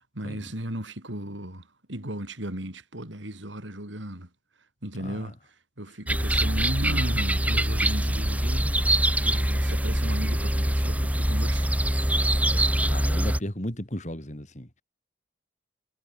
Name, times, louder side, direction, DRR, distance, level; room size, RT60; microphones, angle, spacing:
voice 1, 0.0-4.3 4.8-5.4 5.8-11.8 12.3-12.4, right 1 dB, 85° right, 5.4 m, -36 dB
sound 1, 6.1-13.4, right 1 dB, 10° right, 2.4 m, -24 dB
voice 2, 12.5-14.8, left 1 dB, 40° left, 3.1 m, -35 dB
head